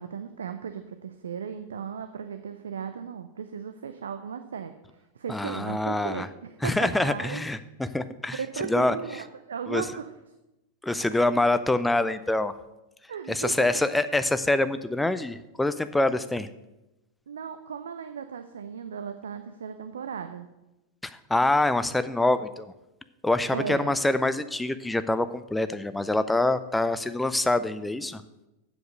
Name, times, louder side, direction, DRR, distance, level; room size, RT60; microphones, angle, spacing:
voice 1, 0.0-7.4 8.4-10.1 13.1-14.1 17.3-20.5 23.5-24.0, right 7 dB, 65° right, 8 dB, 0.5 m, -36 dB
voice 2, 5.3-6.3 6.6-8.4 8.7-9.0 9.7-9.8 10.8-12.5 13.3-16.5 21.0-22.7 23.2-28.2, left 2 dB, 5° left, 12 dB, 0.5 m, -25 dB
7.9 x 7.2 x 6.5 m, 0.96 s
figure-of-eight pair, 90°, 0 cm